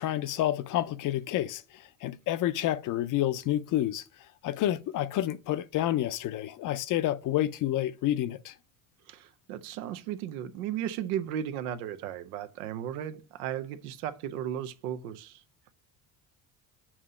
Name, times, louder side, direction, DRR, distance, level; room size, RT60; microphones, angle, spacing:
voice 1, 0.0-4.0 4.4-8.5, left 13 dB, 50° left, 0.6 m, -29 dB
voice 2, 9.1-15.4, right 10 dB, 90° right, 0.8 m, -35 dB
7.3 x 2.8 x 4.9 m
supercardioid pair, 90°, 42 cm